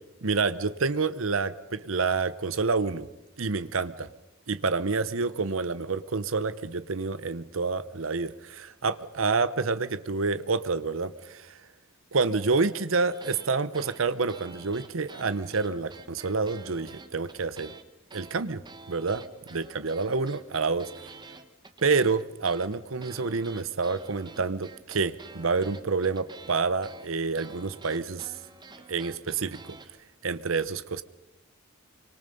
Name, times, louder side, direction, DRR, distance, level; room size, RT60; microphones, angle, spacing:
voice 1, 0.2-3.1 3.4-4.1 4.5-11.5 12.1-17.7 18.1-18.6 18.9-19.2 19.5-21.1 21.8-28.3 28.9-29.8 30.2-31.0, right 4 dB, 80° right, 14 dB, 0.9 m, -28 dB
sound 1, 13.1-13.5 13.7-17.8 18.1-29.9, right 3 dB, 20° right, 1.3 m, -48 dB
25.5 x 24.5 x 5.4 m, 0.97 s
head